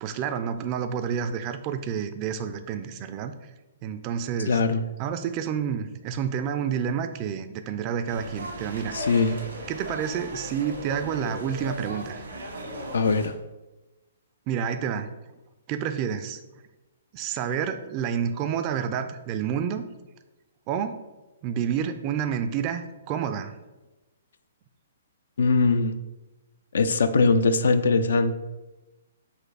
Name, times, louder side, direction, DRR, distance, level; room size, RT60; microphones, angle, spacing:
voice 1, 0.0-3.3 3.8-4.6 5.0-9.0 9.7-12.2 14.5-15.1 15.7-16.4 17.1-19.8 20.7-21.0 21.4-23.5, right 8 dB, 30° right, 9 dB, 0.3 m, -29 dB
voice 2, 4.5-4.8 8.9-9.4 12.9-13.3 25.4-26.0 26.7-28.4, left 4 dB, 75° left, 10 dB, 0.3 m, -21 dB
sound 1, 8.1-13.3, equal, 85° right, 1.2 m, -37 dB
4.1 x 2.5 x 4.7 m, 1.1 s
hypercardioid pair, 140°, 0 cm